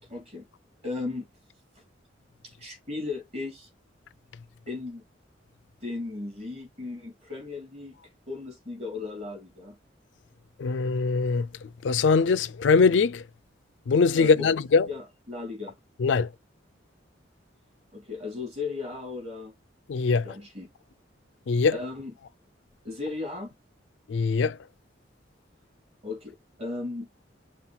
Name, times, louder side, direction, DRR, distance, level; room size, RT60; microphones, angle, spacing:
voice 1, 0.1-0.5 0.8-1.3 2.4-3.7 4.7-5.1 5.8-8.0 8.3-9.8 14.2-14.6 14.9-15.8 17.9-19.5 20.2-20.7 21.7-22.1 22.8-23.5 26.0-27.1, left 3 dB, 35° right, 2.4 m, -36 dB
voice 2, 10.6-11.5 11.8-13.2 13.9-14.9 16.0-16.3 19.9-20.3 21.5-21.8 24.1-24.6, left 4 dB, 70° left, 0.4 m, -22 dB
5.7 x 2.3 x 3.9 m
head